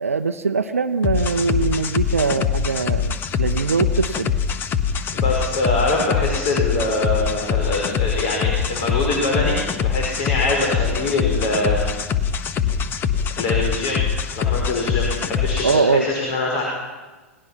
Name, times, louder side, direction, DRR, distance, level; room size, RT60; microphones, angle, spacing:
voice 1, 0.0-4.3 15.6-16.1, right 4 dB, 75° right, 7 dB, 0.7 m, -22 dB
sound 1, 1.0-15.8, left 7 dB, 25° left, 1.2 m, -23 dB
voice 2, 5.1-9.6 9.8-11.8 13.4-14.0 14.4-16.6, left 2 dB, 45° left, -1 dB, 5.5 m, -23 dB
28.5 x 19.0 x 5.9 m, 1.2 s
figure-of-eight pair, 95°, 8 cm